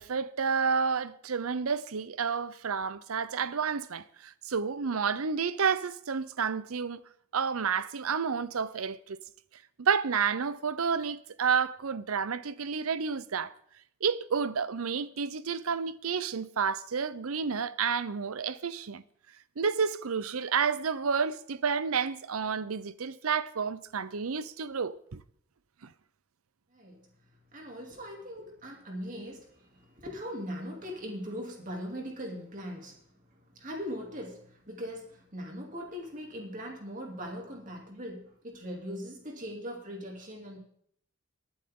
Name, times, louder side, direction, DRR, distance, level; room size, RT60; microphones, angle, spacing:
voice 1, 0.0-7.0 7.3-9.2 9.8-13.5 14.0-19.0 19.6-25.2 25.8-25.9, right 6 dB, 90° right, 0.7 m, -30 dB
voice 2, 26.7-27.1 27.5-40.6, equal, 40° right, 2.9 m, -40 dB
21.5 x 8.9 x 3.8 m
head